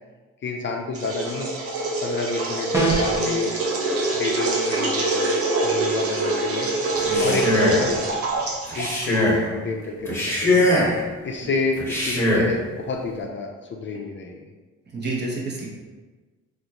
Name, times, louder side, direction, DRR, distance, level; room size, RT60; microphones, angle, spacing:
voice 1, 0.4-1.5 2.0-3.5 4.1-5.3 5.6-6.7 7.2-8.1 8.4-10.7 11.2-14.5, left 4 dB, 40° left, 0 dB, 0.4 m, -29 dB
sound 1, 0.9-9.5, right 2 dB, 50° right, 0.7 m, -25 dB
sound 2, 2.7-3.3, right 2 dB, 10° right, 0.8 m, -22 dB
Male speech man speaking, 7.0-7.9 8.7-9.4 10.0-11.0 11.8-12.5, left 1 dB, 10° left, 1.2 m, -21 dB
voice 2, 7.0-7.4 11.4-11.5 14.9-15.7, right 2 dB, 35° right, -3 dB, 1.0 m, -30 dB
3.6 x 2.5 x 2.9 m, 1.3 s
cardioid pair, 90°, 30 cm